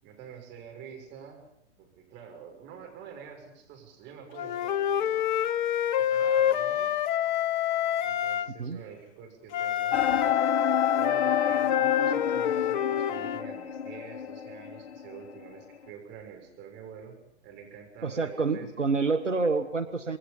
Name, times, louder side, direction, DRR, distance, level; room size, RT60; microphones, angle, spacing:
voice 1, 0.0-1.4 1.8-5.2 6.0-7.0 8.0-10.0 10.9-18.7, right 7 dB, 30° right, 3 dB, 6.9 m, -47 dB
Wind instrument woodwind instrument, 4.4-8.5 9.5-13.4, left 10 dB, 40° left, 1.0 m, -27 dB
sound 1, 9.9-15.5, left 8 dB, 65° left, 1.4 m, -30 dB
voice 2, 18.0-20.2, right 4 dB, 90° right, 10 dB, 1.5 m, -28 dB
27.5 x 21.0 x 5.6 m, 0.82 s
figure-of-eight pair, 115°, 35 cm